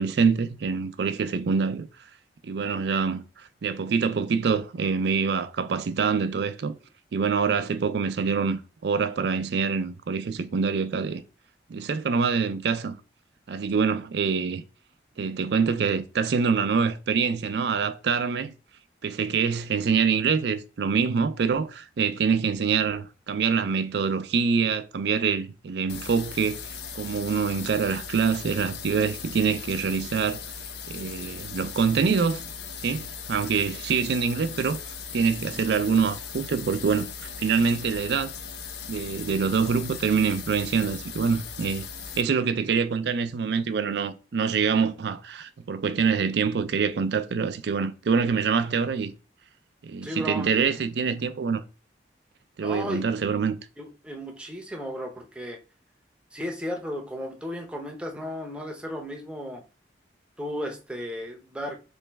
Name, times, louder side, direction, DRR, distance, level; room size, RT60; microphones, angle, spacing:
voice 1, 0.0-1.9 2.4-6.7 7.1-11.2 11.7-13.0 13.5-14.6 15.2-18.5 19.0-26.6 26.9-30.4 30.9-32.4 32.8-34.8 35.1-37.1 37.4-38.3 38.9-41.9 42.2-49.1 49.8-51.6 52.6-53.6, right 5 dB, 60° right, 0.4 m, -25 dB
sound 1, 25.9-42.2, left 6 dB, 60° left, 0.5 m, -38 dB
voice 2, 50.0-50.8 52.6-53.1 53.8-55.6 56.3-59.6 60.4-61.8, equal, 5° right, 0.6 m, -34 dB
3.2 x 3.1 x 3.3 m
head